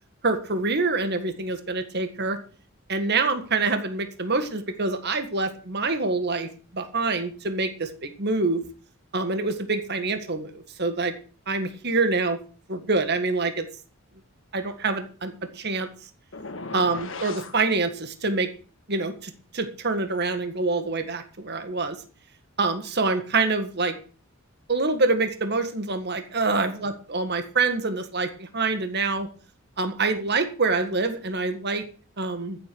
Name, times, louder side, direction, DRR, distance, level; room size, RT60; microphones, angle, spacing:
voice 1, 0.2-2.4 2.9-8.6 9.1-11.1 11.5-12.4 12.7-13.6 14.5-15.9 16.7-18.5 18.9-21.9 22.6-24.0 24.7-29.3 29.8-31.8 32.2-32.6, right 3 dB, 50° right, 8 dB, 1.7 m, -26 dB
sound 1, 16.3-17.6, left 3 dB, 65° left, 1.6 m, -37 dB
14.5 x 8.0 x 6.2 m, 0.40 s
head